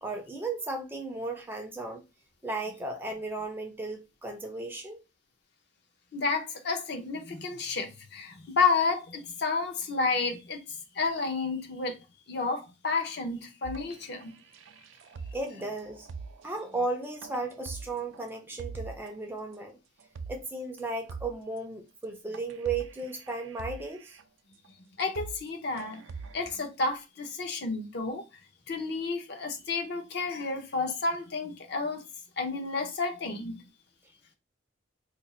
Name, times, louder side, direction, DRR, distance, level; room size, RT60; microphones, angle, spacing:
voice 1, 0.0-2.0 2.4-5.0 15.3-16.1 16.4-19.8 20.3-24.2, right 3 dB, 10° right, 0.5 m, -35 dB
voice 2, 6.1-14.3 25.0-26.0 26.3-28.2 28.7-32.0 32.4-33.6, left 4 dB, 55° left, 0.7 m, -31 dB
sound 1, 13.6-19.1 19.5-19.6 20.0-20.5 20.8-20.9 21.1-21.6 22.0-22.1 22.3-24.2 24.6-24.7 25.0-25.5 25.8-26.5, right 4 dB, 70° right, 0.4 m, -44 dB
2.5 x 2.4 x 4.0 m
head